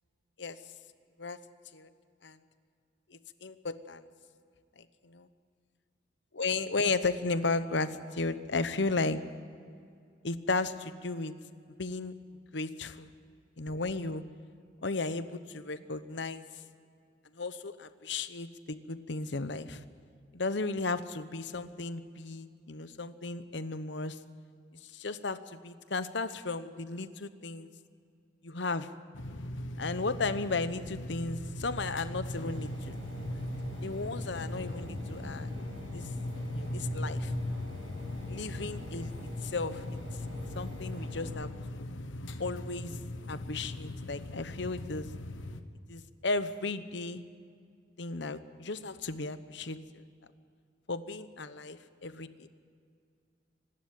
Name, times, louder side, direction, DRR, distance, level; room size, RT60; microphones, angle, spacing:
voice 1, 3.1-4.0 4.8-5.3 6.3-9.2 10.2-11.3 11.7-12.1 12.5-13.1 13.6-14.2 14.8-16.5 17.3-19.8 20.3-24.2 24.8-27.7 28.4-28.9 29.8-33.0 33.7-35.5 35.9-36.0 36.5-37.3 38.3-39.1 39.4-40.0 40.5-41.9 42.4-43.0 43.3-45.1 45.9-47.2 48.0-50.0 50.9-52.5, left 3 dB, 70° left, 12 dB, 1.0 m, -35 dB
sound 1, 29.1-45.6, left 1 dB, 85° left, 1.2 m, -40 dB
Engine, 32.3-41.3, left 1 dB, 75° right, 7.1 m, -42 dB
25.5 x 12.0 x 9.4 m, 2.3 s
head